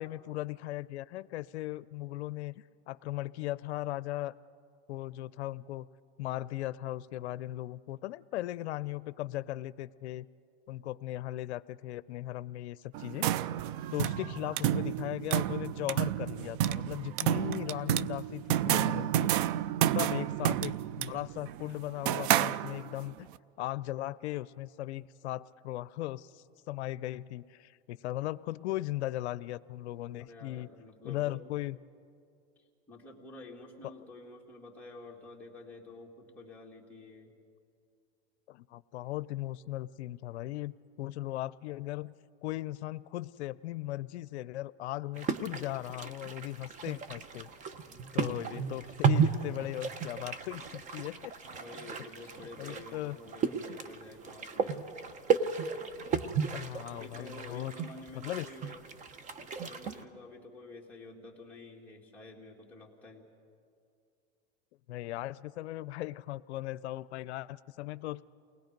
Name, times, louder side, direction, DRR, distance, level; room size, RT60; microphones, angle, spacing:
voice 1, 0.0-2.5 2.9-4.3 4.9-5.9 6.2-10.3 10.7-13.3 13.9-19.3 19.9-23.3 23.6-30.7 31.0-31.8 38.5-40.7 41.0-42.1 42.4-47.5 48.1-51.3 52.6-53.2 56.5-57.7 58.2-58.5 64.9-68.2, left 16 dB, 75° left, 17 dB, 0.6 m, -38 dB
sound 1, 12.9-23.1, right 12 dB, 50° right, 0.5 m, -30 dB
voice 2, 14.0-14.9 19.8-20.5 30.2-31.4 32.6-37.3 51.4-54.9 56.9-58.8 59.4-63.3, left 2 dB, 5° left, -4 dB, 2.6 m, -50 dB
sound 2, 45.2-60.0, right 6 dB, 20° right, 0.9 m, -34 dB
29.0 x 20.0 x 5.3 m, 2.4 s
supercardioid pair, 140°, 34 cm